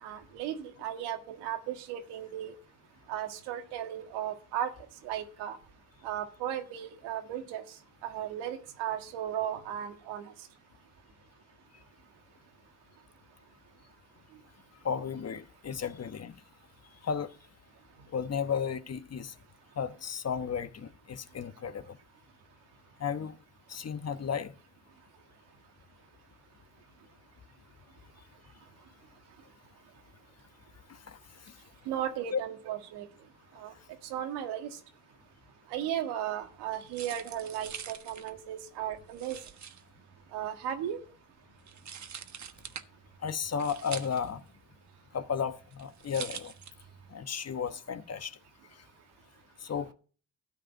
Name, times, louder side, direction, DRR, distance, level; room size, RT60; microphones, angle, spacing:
voice 1, 0.0-2.6 3.1-4.7 5.0-5.6 6.0-7.6 8.0-10.3 31.9-33.1 33.6-33.7 34.0-34.7 35.7-39.4 40.3-41.0, right 10 dB, 80° right, 1.8 m, -35 dB
voice 2, 14.8-16.3 17.0-17.3 18.1-19.3 19.8-22.0 23.0-23.3 23.7-24.5 30.9-31.2 32.3-32.4 43.2-44.4 45.1-46.5 47.1-48.3 49.6-49.9, left 7 dB, 40° left, 1.2 m, -34 dB
sound 1, 36.4-47.2, right 8 dB, 45° right, 1.3 m, -46 dB
13.0 x 5.1 x 8.9 m
supercardioid pair, 60°, 40 cm